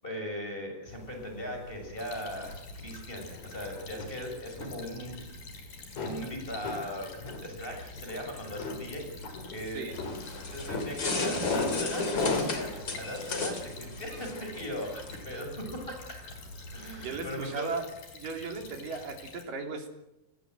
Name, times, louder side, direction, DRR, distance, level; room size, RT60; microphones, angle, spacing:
voice 1, 0.0-5.2 6.0-9.9 10.5-16.2 16.7-17.7, equal, 15° left, 3 dB, 6.5 m, -39 dB
sound 1, 0.9-17.4, left 3 dB, 50° left, 4.7 m, -40 dB
Stream / Trickle dribble, 2.0-19.4, left 4 dB, 70° left, 5.8 m, -49 dB
sound 2, 9.9-15.2, left 3 dB, 30° left, 3.7 m, -34 dB
voice 2, 17.0-17.9 18.1-20.0, right 4 dB, 65° right, 4 dB, 5.2 m, -36 dB
30.0 x 19.5 x 7.9 m, 0.91 s
omnidirectional pair, 4.2 m